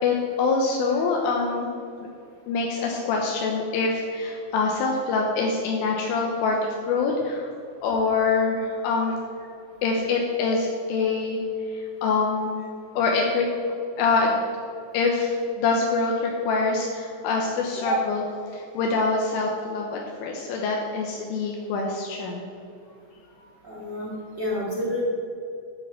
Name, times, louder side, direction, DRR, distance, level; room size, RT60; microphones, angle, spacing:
voice 1, 0.0-1.7 2.5-7.5 7.8-9.2 9.8-11.4 11.7-12.5 13.0-13.5 14.0-14.4 14.9-18.2 18.5-22.5, left 4 dB, 80° left, 0 dB, 3.5 m, -25 dB
voice 2, 23.6-24.1 24.4-25.0, equal, 80° right, -6 dB, 0.9 m, -28 dB
12.0 x 6.9 x 7.7 m, 2.5 s
omnidirectional pair, 5.9 m